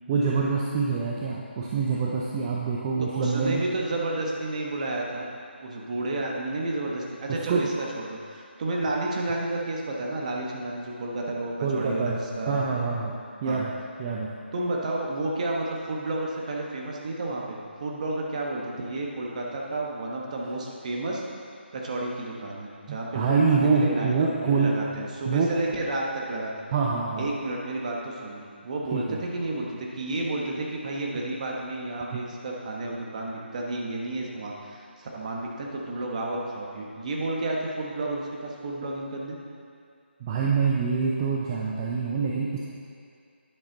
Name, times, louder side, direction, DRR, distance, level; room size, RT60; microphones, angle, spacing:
voice 1, 0.1-3.6 7.3-7.7 11.6-12.2 12.5-13.7 14.0-14.3 22.9-24.7 25.3-25.5 26.7-27.3 28.9-29.2 40.2-42.6, right 5 dB, 20° right, -4 dB, 0.6 m, -25 dB
voice 2, 3.1-5.3 5.6-12.6 13.1-13.2 13.4-13.6 14.5-21.2 21.7-26.5 27.2-39.4, right 2 dB, 40° right, -2 dB, 1.3 m, -31 dB
9.7 x 7.1 x 4.0 m, 2.4 s
figure-of-eight pair, 155°, 6 cm